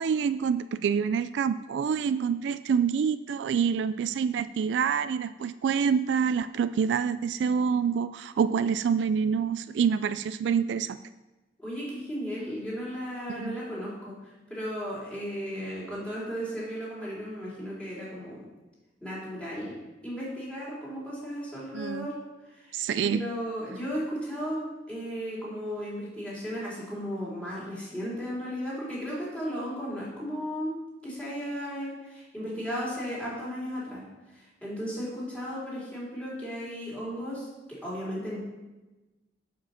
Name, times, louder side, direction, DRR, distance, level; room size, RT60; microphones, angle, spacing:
voice 1, 0.0-11.0 13.4-13.6 21.7-22.1 22.7-23.2, right 6 dB, 70° right, 13 dB, 0.3 m, -27 dB
voice 2, 11.6-14.1 14.5-18.4 19.0-19.7 20.0-22.1 22.5-30.7 31.0-34.0 34.3-38.4, equal, 5° left, -7 dB, 3.5 m, -35 dB
7.6 x 7.2 x 5.7 m, 1.1 s
head